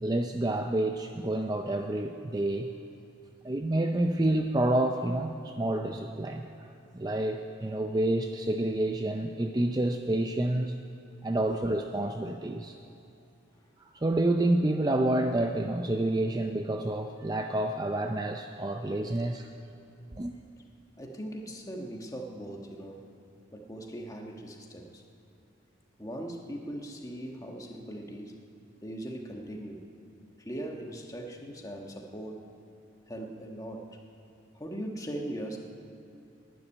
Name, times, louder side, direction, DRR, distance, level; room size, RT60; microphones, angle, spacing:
voice 1, 0.0-2.7 3.4-6.7 6.9-10.8 11.2-12.7 13.8-19.5 20.2-20.3, right 1 dB, 20° right, 5 dB, 0.4 m, -28 dB
voice 2, 21.0-23.1 23.5-25.0 26.0-28.4 28.8-29.8 30.4-32.5 33.1-34.0 34.5-35.6, right 1 dB, 15° left, 1 dB, 1.3 m, -40 dB
12.0 x 10.0 x 9.7 m, 2.6 s
head